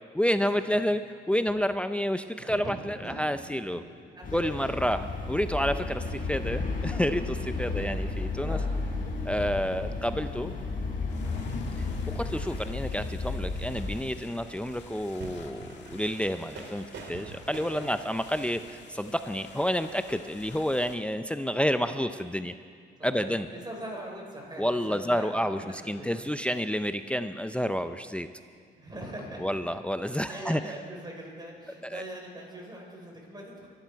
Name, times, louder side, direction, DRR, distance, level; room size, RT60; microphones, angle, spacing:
voice 1, 0.1-1.0 1.3-3.8 4.3-8.6 9.2-10.6 12.1-16.8 17.1-22.6 23.0-23.5 24.6-28.3 29.4-30.6 31.8-32.0, equal, 5° left, 10 dB, 0.6 m, -29 dB
voice 2, 2.4-3.2 3.6-3.8 4.1-4.7 7.6-8.7 11.2-11.5 17.7-17.9 23.0-26.3 28.8-29.6 30.3-33.7, right 1 dB, 20° right, 0 dB, 4.6 m, -42 dB
sound 1, 4.2-14.0, left 3 dB, 45° left, 4.2 m, -33 dB
sound 2, 11.1-20.9, left 6 dB, 65° left, 1.7 m, -51 dB
sound 3, 14.5-19.4, right 3 dB, 65° right, 2.6 m, -46 dB
23.5 x 11.5 x 4.7 m, 2.1 s
cardioid pair, 90°, 20 cm